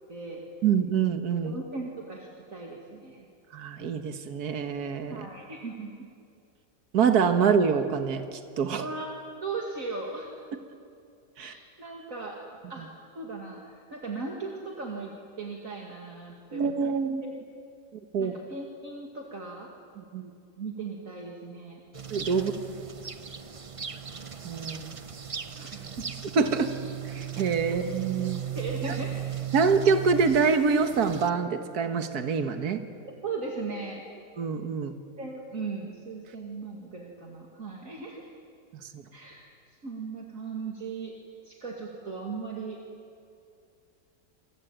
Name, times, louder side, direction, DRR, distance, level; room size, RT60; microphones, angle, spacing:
voice 1, 0.1-0.4 1.4-3.3 5.1-6.1 8.7-9.2 9.4-10.4 11.4-12.9 13.1-16.8 17.2-17.4 18.2-19.7 20.6-21.8 22.3-22.5 25.6-26.1 27.7-27.8 28.5-29.3 33.0-34.0 35.2-38.3 39.1-41.1 41.4-42.8, right 4 dB, 55° right, 0 dB, 2.7 m, -38 dB
voice 2, 0.6-1.5 3.5-5.2 6.9-8.8 11.4-11.5 16.5-17.2 18.1-18.3 20.1-20.3 22.1-22.5 24.4-25.0 26.4-26.7 27.1-28.4 29.5-32.8 34.4-34.9 38.9-39.0, right 5 dB, 70° right, 8 dB, 1.9 m, -25 dB
sound 1, 21.9-31.3, right 9 dB, 35° right, 0.6 m, -37 dB
27.5 x 22.5 x 9.0 m, 2.4 s
omnidirectional pair, 1.7 m